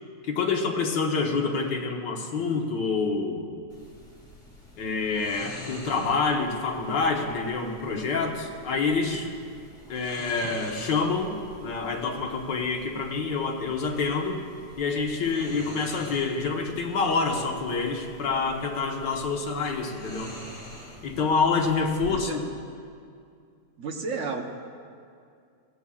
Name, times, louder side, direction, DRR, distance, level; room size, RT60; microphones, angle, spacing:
voice 1, 0.2-3.5 4.8-9.3 9.9-14.4 14.8-20.3 21.0-22.5, left 4 dB, 85° left, 1 dB, 2.0 m, -27 dB
sound 1, 3.7-22.1, equal, 20° left, 2.3 m, -46 dB
voice 2, 22.1-22.4 23.8-24.4, right 4 dB, 50° right, 3 dB, 1.3 m, -32 dB
21.0 x 16.5 x 2.4 m, 2.3 s
omnidirectional pair, 1.8 m